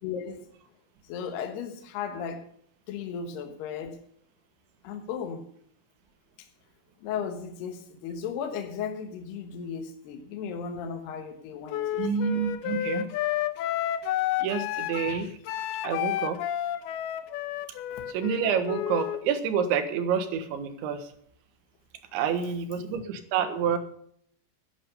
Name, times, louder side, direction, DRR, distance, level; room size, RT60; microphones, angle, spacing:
voice 1, 0.0-0.5 1.1-2.4 2.9-4.0 4.8-5.5 7.0-12.0 17.9-18.0 22.9-23.0, left 7 dB, 65° left, 5 dB, 3.0 m, -35 dB
Wind instrument woodwind instrument, 11.7-19.2, left 12 dB, 85° left, 2.2 m, -31 dB
voice 2, 12.0-13.1 14.4-15.4 15.8-16.4 18.1-21.1 22.1-23.8, right 7 dB, 70° right, 8 dB, 3.6 m, -28 dB
11.0 x 11.0 x 6.8 m, 0.65 s
omnidirectional pair, 5.7 m